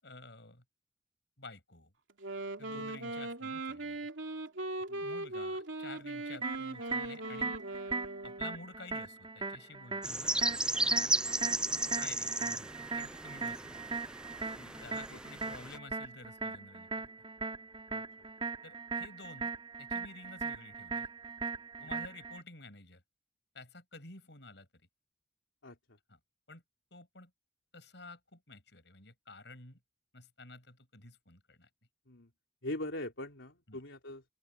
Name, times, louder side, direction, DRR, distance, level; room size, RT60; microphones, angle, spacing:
voice 1, 0.0-0.6 1.4-1.9 2.6-4.1 5.0-7.6 8.2-10.3 12.0-13.8 14.8-17.0 18.6-19.5 19.8-21.1 21.8-23.0 23.5-24.7 26.1-26.2 26.5-26.6 26.9-27.3 27.7-29.8 30.1-31.7 33.7-33.8, left 3 dB, 65° left, 7.9 m, -51 dB
Wind instrument woodwind instrument, 2.1-8.6, right 2 dB, 90° right, 2.8 m, -39 dB
sound 1, 6.4-22.4, right 4 dB, 25° right, 4.3 m, -39 dB
sound 2, 10.0-15.8, right 2 dB, 5° right, 0.4 m, -34 dB
voice 2, 14.5-14.8 15.1-15.2 17.9-18.0 21.8-22.0 25.6-26.0 32.1-32.3 32.6-34.3, left 1 dB, 85° left, 3.7 m, -43 dB
open air
head